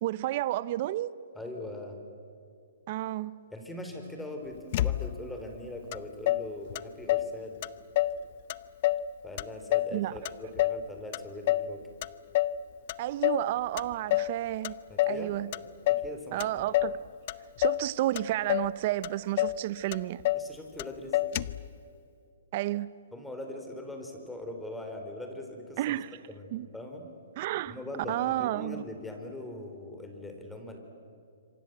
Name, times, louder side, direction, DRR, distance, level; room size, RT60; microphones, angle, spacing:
voice 1, 0.0-1.1 2.9-3.4 9.9-10.2 10.6-10.7 13.0-14.7 15.1-15.5 16.3-17.0 17.6-20.2 22.5-22.9 25.8-26.2 26.5-26.7 27.4-27.8 28.1-28.8, right 15 dB, 45° right, 0.8 m, -31 dB
voice 2, 1.4-2.0 3.5-7.6 9.2-11.8 14.9-15.4 15.8-16.6 20.3-21.2 23.1-25.8 26.3-27.1 27.7-30.8, left 1 dB, 5° left, 4.0 m, -41 dB
Motor vehicle (road), 4.7-5.4 5.9-6.0 6.3-7.3 7.6-8.2 8.5-9.1 9.4-10.8 11.1-11.7 12.0-12.6 12.9-13.5 13.8-14.4 14.6-15.2 15.5-16.1 16.4-17.0 17.3-17.9 18.2-18.7 19.0-19.1 19.4-19.6 19.9-20.5 20.8-20.9 21.1-21.7, left 14 dB, 45° left, 0.7 m, -28 dB
27.0 x 25.0 x 8.0 m
hypercardioid pair, 145°, 0 cm